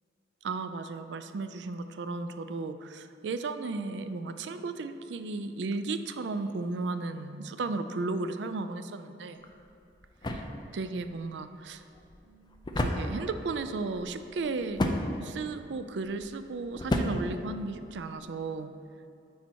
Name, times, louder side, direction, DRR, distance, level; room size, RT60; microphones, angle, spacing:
voice 1, 0.4-9.5 10.3-10.4 10.7-11.8 12.2-14.8 15.2-18.7, right 3 dB, 75° right, 10 dB, 0.4 m, -35 dB
sound 1, 9.4-18.2, left 1 dB, 25° left, 0.5 m, -35 dB
9.1 x 4.3 x 4.6 m, 2.6 s
head